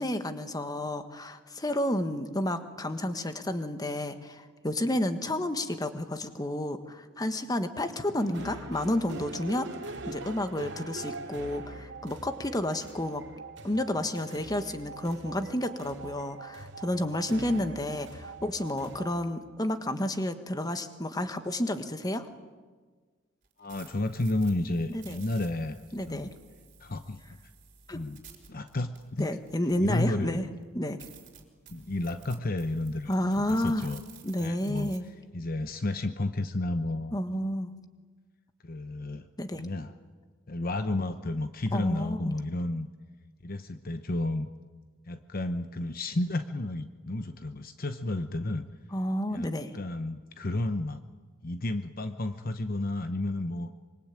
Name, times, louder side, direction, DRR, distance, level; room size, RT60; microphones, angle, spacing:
voice 1, 0.0-13.2 13.6-22.3 24.9-25.2 25.9-26.3 27.9-28.0 29.2-30.5 30.7-31.0 33.1-33.9 34.2-35.0 37.1-37.7 39.4-39.6 41.7-42.3 48.9-49.7, left 1 dB, 20° left, 8 dB, 1.5 m, -31 dB
sound 1, 8.2-19.2, right 3 dB, 60° right, 2.3 m, -43 dB
sound 2, 23.4-30.2 30.6-30.7 31.0-35.0, right 6 dB, 40° right, 4.5 m, -53 dB
voice 2, 23.6-25.8 26.1-26.3 26.8-27.4 27.9-28.2 28.5-29.3 29.8-30.5 31.7-34.0 34.4-34.9 35.3-37.2 38.6-39.3 39.5-39.9 40.5-42.9 43.4-44.5 45.1-48.7 49.3-51.0 51.4-53.7, left 2 dB, 45° left, 9 dB, 0.9 m, -32 dB
25.5 x 24.0 x 8.8 m, 1.4 s
head